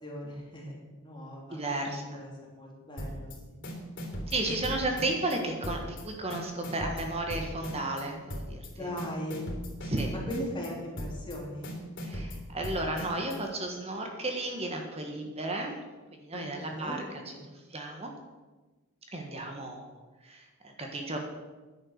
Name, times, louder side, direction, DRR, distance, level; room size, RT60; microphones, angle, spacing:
voice 1, 0.0-3.6 8.7-9.5 10.3-11.8 16.3-17.0 17.3-17.5, equal, 20° left, -3 dB, 3.0 m, -39 dB
voice 2, 1.5-2.2 4.3-8.9 9.8-10.1 12.0-15.8 16.2-17.0 17.7-18.1 19.1-21.2, right 2 dB, 30° right, 3 dB, 1.5 m, -34 dB
sound 1, 3.0-3.4 3.6-5.4 5.6-6.0 6.3-8.0 8.3-8.7 9.0-10.7 11.0-11.4 11.6-13.4, equal, 55° left, 3.6 m, -38 dB
10.5 x 10.0 x 6.7 m, 1.2 s
head